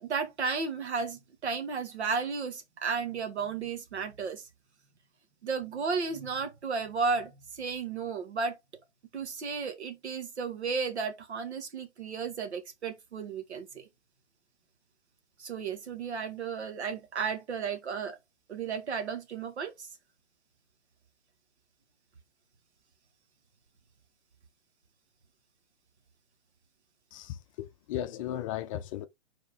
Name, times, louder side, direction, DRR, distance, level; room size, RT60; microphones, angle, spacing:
voice 1, 0.0-4.4 5.4-8.5 9.1-13.9 15.4-18.2 18.5-19.9, right 5 dB, 70° right, 2.1 m, -33 dB
voice 2, 27.1-29.1, left 12 dB, 30° left, 0.6 m, -36 dB
4.9 x 4.3 x 4.5 m
hypercardioid pair, 130°, 35 cm